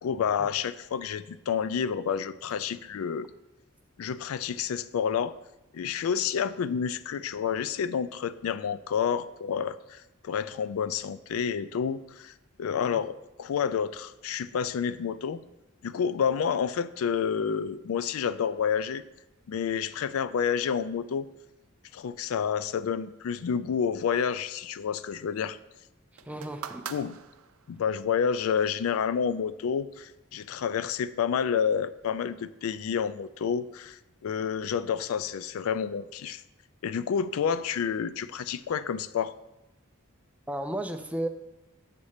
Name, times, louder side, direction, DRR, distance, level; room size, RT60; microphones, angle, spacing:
voice 1, 0.0-3.3 4.0-5.3 5.7-12.3 12.6-15.4 15.8-19.0 19.5-21.3 21.9-25.6 26.9-27.2 27.7-36.4 36.8-39.3, left 7 dB, 75° left, 15 dB, 0.3 m, -29 dB
voice 2, 26.2-26.9 40.5-41.3, right 1 dB, 5° right, 7 dB, 0.4 m, -34 dB
sound 1, 26.2-27.9 28.9-29.0, right 8 dB, 80° right, 0.5 m, -42 dB
7.4 x 4.1 x 6.5 m, 0.99 s
head